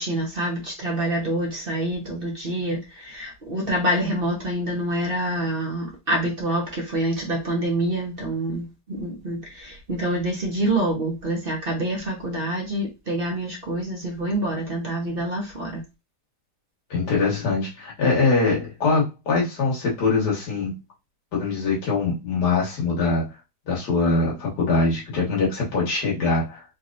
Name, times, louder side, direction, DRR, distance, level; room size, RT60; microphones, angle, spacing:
voice 1, 0.0-15.8, right 1 dB, 40° right, 1.0 m, -26 dB
voice 2, 16.9-20.7 21.3-23.3 23.7-26.6, left 3 dB, 80° left, 1.9 m, -23 dB
4.1 x 2.9 x 2.5 m
omnidirectional pair, 1.8 m